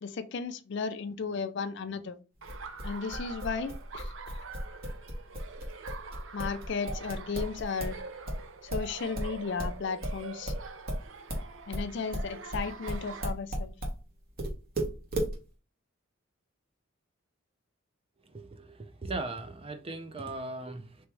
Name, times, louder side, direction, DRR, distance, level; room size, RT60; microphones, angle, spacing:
voice 1, 0.0-2.2 2.8-4.1 6.3-8.0 8.6-10.5 11.7-13.7, left 5 dB, 60° left, 0.4 m, -35 dB
sound 1, 2.4-8.0 8.3-14.0 14.4-15.3, right 1 dB, 45° right, 1.3 m, -34 dB
Laughter, 2.4-13.3, right 4 dB, 70° right, 0.6 m, -45 dB
voice 2, 18.3-21.1, right 2 dB, 30° right, 0.6 m, -38 dB
3.5 x 3.1 x 4.6 m
head